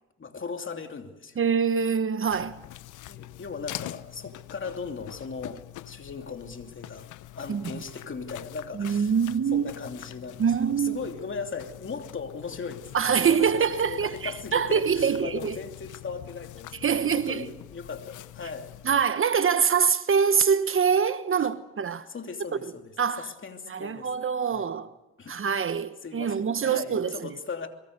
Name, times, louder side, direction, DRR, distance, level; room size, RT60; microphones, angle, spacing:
voice 1, 0.2-1.4 3.1-9.1 9.5-18.7 21.4-21.5 22.1-24.1 24.5-24.7 25.2-25.4 26.0-27.7, left 5 dB, 40° left, 2.9 m, -38 dB
voice 2, 1.4-2.6 7.5-7.6 8.7-9.7 10.4-11.0 12.9-15.6 16.8-17.4 18.8-22.1 22.6-22.7 23.0-23.3 23.7-24.9 25.3-27.3, right 6 dB, 45° right, 1.1 m, -24 dB
sound 1, 2.3-19.0, left 15 dB, 80° left, 0.8 m, -44 dB
24.5 x 22.0 x 6.7 m
cardioid pair, 75°, 30 cm